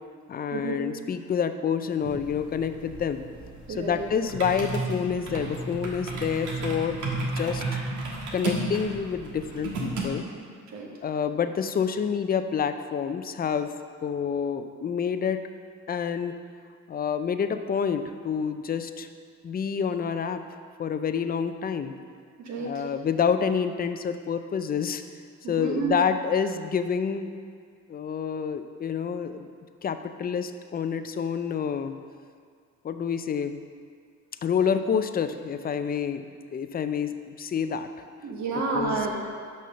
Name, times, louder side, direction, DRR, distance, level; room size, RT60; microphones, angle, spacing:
voice 1, 0.3-3.2 3.7-7.6 8.3-10.3 11.0-13.7 14.0-15.4 15.9-16.3 16.9-19.1 19.4-20.4 20.8-21.9 22.6-25.0 25.5-27.3 27.9-29.5 29.8-31.9 32.8-33.6 34.4-36.2 36.5-38.1 38.7-39.1, left 7 dB, 30° left, 9 dB, 0.4 m, -28 dB
sound 1, 2.0-10.1, right 3 dB, 85° right, 1.5 m, -33 dB
voice 2, 3.7-4.0 10.7-10.9 22.4-22.8 25.4-26.0 38.2-39.1, right 4 dB, 70° right, -1 dB, 1.5 m, -30 dB
6.2 x 5.6 x 5.8 m, 2.1 s
cardioid pair, 90°, 30 cm